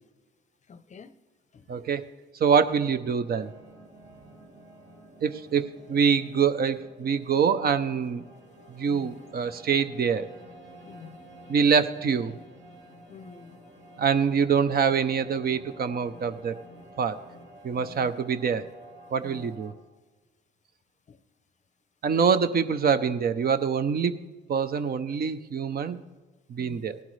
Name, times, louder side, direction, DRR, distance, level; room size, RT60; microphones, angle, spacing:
voice 1, 0.7-1.2 1.5-1.7 8.9-9.1 10.8-11.2 13.1-13.6 17.7-18.1 19.2-19.5 21.1-21.2 22.1-22.5 26.6-26.8, left 6 dB, 35° left, 13 dB, 0.6 m, -47 dB
voice 2, 1.7-2.1 2.4-3.5 5.2-8.2 8.7-10.3 11.5-12.4 14.0-16.6 17.0-17.2 17.6-18.6 19.1-19.7 22.0-24.2 24.5-26.0 26.5-27.0, right 6 dB, 50° right, 11 dB, 0.6 m, -25 dB
sound 1, 3.2-19.7, right 1 dB, 70° right, 2.6 m, -50 dB
17.5 x 12.0 x 3.2 m, 1.3 s
cardioid pair, 90°, 20 cm